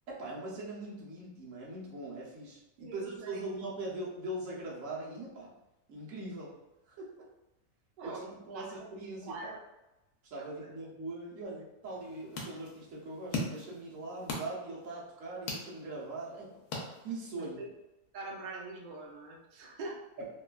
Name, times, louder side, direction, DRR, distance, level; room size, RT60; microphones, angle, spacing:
voice 1, 0.1-5.5 5.9-6.5 6.9-7.1 8.0-9.5 10.2-16.6 17.0-17.6 20.2-20.3, right 2 dB, 65° right, -5 dB, 1.1 m, -41 dB
voice 2, 2.8-3.4 8.0-8.9 9.2-9.6 10.4-10.7 17.3-17.7 18.1-20.0, right 2 dB, 90° right, -2 dB, 0.4 m, -44 dB
sound 1, 11.8-17.5, left 2 dB, 85° left, 1.2 m, -42 dB
3.0 x 2.2 x 2.3 m, 0.97 s
omnidirectional pair, 1.6 m